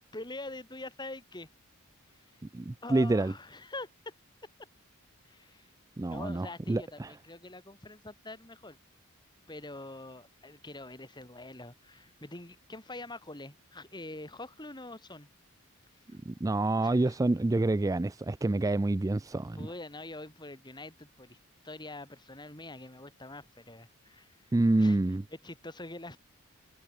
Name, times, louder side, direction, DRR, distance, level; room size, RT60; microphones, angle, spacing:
voice 1, 0.1-1.5 2.1-2.4 2.8-4.1 5.2-5.7 6.0-8.8 9.5-15.3 16.1-16.2 16.8-17.2 19.6-21.4 21.6-24.4 24.8-25.0 25.4-26.2, left 2 dB, 20° left, 3.4 m, -44 dB
voice 2, 2.5-3.3 6.0-7.1 16.3-19.7 24.5-25.2, right 2 dB, 15° right, 0.3 m, -27 dB
head